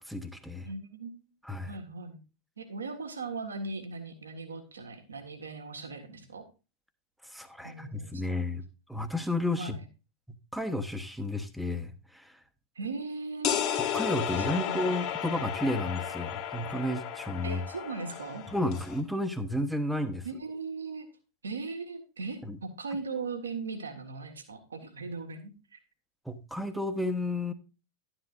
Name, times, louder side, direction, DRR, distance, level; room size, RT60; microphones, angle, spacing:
voice 1, 0.1-0.7 1.4-1.7 7.2-8.6 8.9-9.8 10.5-12.4 13.9-17.6 18.5-20.3 22.4-22.6 26.2-27.5, left 1 dB, ahead, 9 dB, 1.1 m, -32 dB
voice 2, 0.6-1.3 1.7-2.2 2.6-6.4 7.6-8.3 9.6-9.8 12.7-13.6 14.4-14.9 17.4-18.4 20.2-21.1 21.4-25.8, right 4 dB, 70° right, 6 dB, 1.7 m, -39 dB
sound 1, 13.4-19.0, left 9 dB, 40° left, 1.6 m, -33 dB
11.5 x 9.9 x 2.6 m, 0.30 s
figure-of-eight pair, 90°, 0 cm